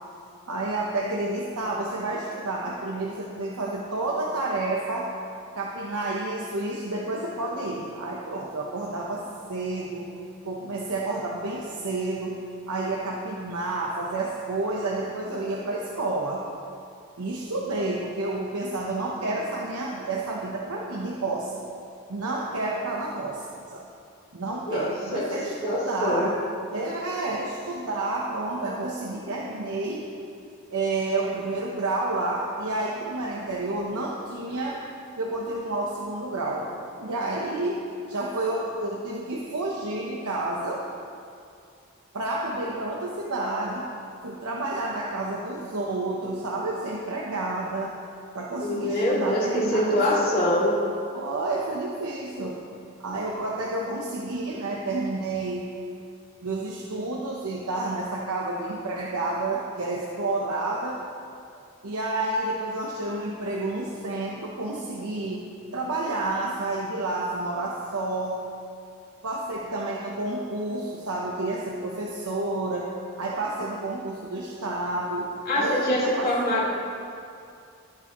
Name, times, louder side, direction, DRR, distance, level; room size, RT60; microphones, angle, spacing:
voice 1, 0.5-5.1 5.5-9.2 9.5-10.1 10.4-12.4 12.7-16.4 17.2-21.5 22.1-23.9 24.3-26.4 26.7-30.1 30.7-34.8 35.2-40.8 42.1-43.9 44.2-47.9 48.3-50.0 51.1-52.6 53.0-55.7 56.4-61.0 61.8-65.5 65.7-68.4 69.2-72.9 73.2-76.6, right 2 dB, 85° right, -3 dB, 1.0 m, -30 dB
voice 2, 24.7-25.2 25.6-26.3 48.6-50.7 75.4-76.7, left 1 dB, 40° left, -7 dB, 2.5 m, -24 dB
19.5 x 6.8 x 3.1 m, 2.5 s
head